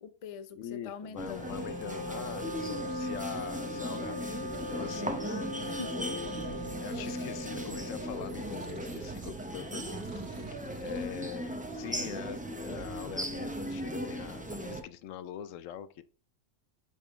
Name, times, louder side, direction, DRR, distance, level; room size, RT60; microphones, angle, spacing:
voice 1, 0.0-1.5 5.2-6.0, left 6 dB, 50° left, 0.4 m, -44 dB
voice 2, 0.6-5.2 5.9-6.3 6.8-10.5 10.8-16.0, left 10 dB, 80° left, 0.9 m, -43 dB
sound 1, 1.2-14.8, right 1 dB, 10° right, 0.6 m, -38 dB
Wind instrument woodwind instrument, 1.4-9.2, left 1 dB, 20° left, 1.2 m, -40 dB
sound 2, 4.5-5.0 6.0-7.1 7.7-9.5 9.8-11.1, right 8 dB, 70° right, 1.0 m, -48 dB
5.4 x 4.9 x 3.6 m
omnidirectional pair, 1.3 m